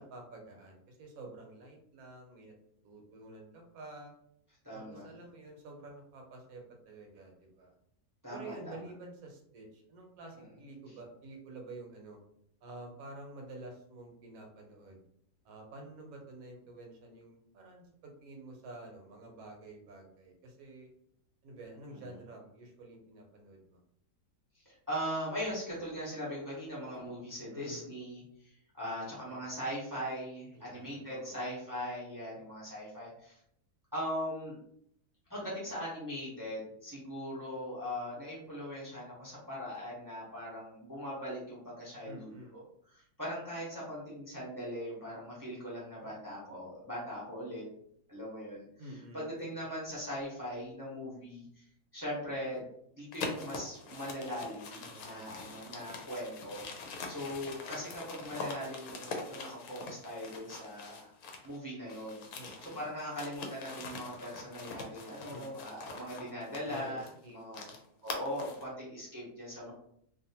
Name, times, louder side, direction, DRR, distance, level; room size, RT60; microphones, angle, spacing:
voice 1, 0.0-2.5 2.8-4.1 4.7-7.7 8.3-12.2 12.6-15.1 15.4-20.9 21.4-23.8 27.5-27.9 28.8-29.5 30.5-31.4 42.0-42.5 48.8-49.5 54.8-55.3 62.3-62.8 65.3-65.8 66.7-67.8 69.6-69.7, right 2 dB, 65° right, 2 dB, 1.1 m, -50 dB
voice 2, 4.6-5.1 8.2-8.8 24.6-33.3 33.9-34.6 35.3-42.6 42.9-47.7 48.1-48.7 49.1-51.6 51.9-52.7 52.9-61.1 61.4-62.2 62.6-67.6 68.0-69.7, equal, 20° right, -7 dB, 0.6 m, -40 dB
sound 1, 53.1-61.6 61.9-68.7, left 3 dB, 70° left, 1.0 m, -44 dB
2.7 x 2.5 x 2.7 m, 0.71 s
omnidirectional pair, 1.7 m